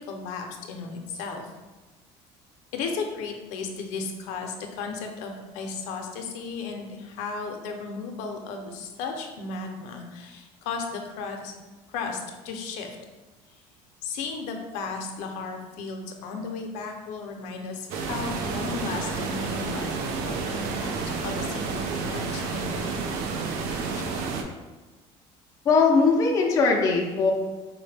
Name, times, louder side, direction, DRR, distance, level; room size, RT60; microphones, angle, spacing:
voice 1, 0.0-1.5 2.7-11.5 11.9-12.2 12.4-13.0 14.0-20.9 21.2-22.7 23.9-24.0, left 4 dB, 80° left, 3 dB, 0.5 m, -35 dB
sound 1, 17.9-24.4, right 4 dB, 90° right, 0.5 m, -30 dB
voice 2, 25.7-27.3, left 4 dB, 25° left, 0 dB, 0.4 m, -20 dB
4.8 x 2.1 x 3.3 m, 1.2 s
cardioid pair, 175°, 12 cm